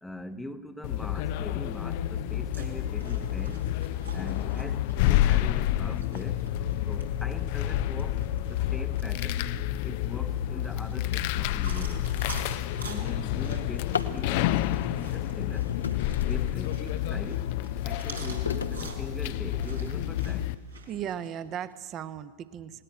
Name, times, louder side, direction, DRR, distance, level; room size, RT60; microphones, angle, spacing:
voice 1, 0.0-3.7 4.1-6.5 6.9-8.2 8.5-9.5 9.8-12.1 12.8-15.7 16.3-17.5 17.8-20.5, left 1 dB, 5° left, 0.9 m, -42 dB
sound 1, 0.8-20.5, left 12 dB, 50° left, 0.6 m, -29 dB
sound 2, 2.5-21.3, right 2 dB, 80° right, 4.0 m, -47 dB
Drawer open or close, 12.4-14.2 15.3-16.9 17.4-19.9 20.5-20.6 21.1-21.2 21.6-22.0, left 6 dB, 70° left, 1.0 m, -38 dB
voice 2, 20.9-22.8, right 9 dB, 30° right, 1.0 m, -36 dB
19.0 x 18.5 x 9.4 m
figure-of-eight pair, 90°, 0 cm